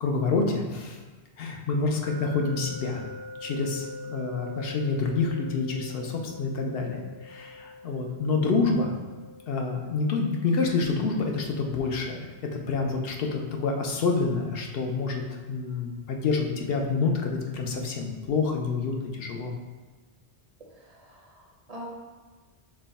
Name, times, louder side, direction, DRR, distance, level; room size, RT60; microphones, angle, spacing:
voice 1, 0.0-1.0 1.4-3.0 3.4-8.9 9.5-15.2 15.5-19.5, left 4 dB, 70° left, 1 dB, 0.8 m, -28 dB
sound 1, 2.0-14.9, left 2 dB, 90° right, 1.1 m, -46 dB
voice 2, 20.6-21.9, equal, 45° right, -2 dB, 0.6 m, -45 dB
5.4 x 2.2 x 4.0 m, 1.4 s
omnidirectional pair, 1.1 m